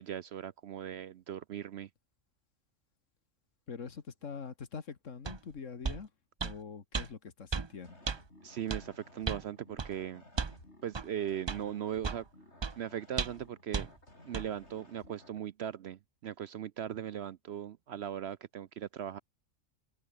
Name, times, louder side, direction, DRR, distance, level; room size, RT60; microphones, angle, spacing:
voice 1, 0.0-1.9 8.4-10.2 10.8-12.2 12.8-13.9 14.3-19.2, right 10 dB, 60° right, 0.8 m, -39 dB
voice 2, 3.7-6.1 6.4-8.0, left 5 dB, 75° left, 2.1 m, -44 dB
sound 1, 5.3-5.4 5.8-6.0 6.4-6.6 6.9-7.1 7.5-7.7 8.1-8.2 8.7-8.8 9.3-9.4 9.8-9.9 10.4-10.6 10.9-11.1 11.5-11.6 12.0-12.2 12.6-12.7 13.2-13.4 13.7-13.9 14.3-14.5, right 5 dB, 30° right, 0.5 m, -34 dB
sound 2, 7.8-15.4, left 1 dB, 60° left, 7.4 m, -57 dB
omnidirectional pair, 1.3 m